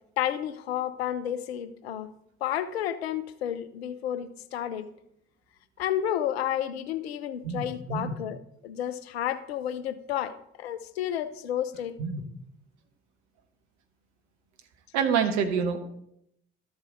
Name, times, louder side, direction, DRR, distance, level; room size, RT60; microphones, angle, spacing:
voice 1, 0.2-2.1 2.4-4.9 5.8-8.4 8.6-12.0, left 10 dB, 75° left, 0.6 m, -31 dB
voice 2, 7.4-8.2 12.0-12.2 14.9-15.8, right 6 dB, 60° right, 1.3 m, -27 dB
12.5 x 7.2 x 3.9 m
figure-of-eight pair, 45°, 31 cm